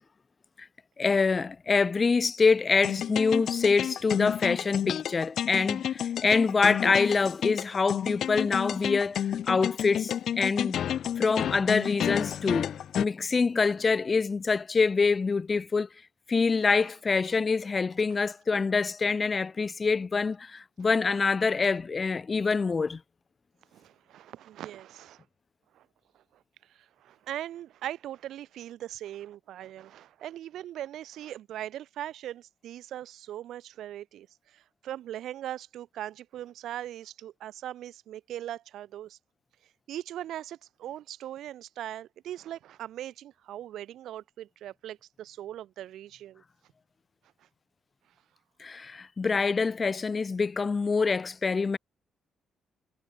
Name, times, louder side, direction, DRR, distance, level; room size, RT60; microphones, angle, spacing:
voice 1, 1.0-10.8 11.2-15.9 16.3-23.0 48.6-51.8, left 4 dB, 35° left, 0.8 m, -25 dB
sound 1, 2.8-13.1, left 10 dB, 65° left, 0.4 m, -30 dB
voice 2, 20.8-21.3 21.5-21.7 23.7-25.2 25.8-25.9 27.0-34.3 34.5-39.2 39.9-46.4, right 12 dB, 80° right, 3.4 m, -40 dB
cardioid pair, 90°, 0 cm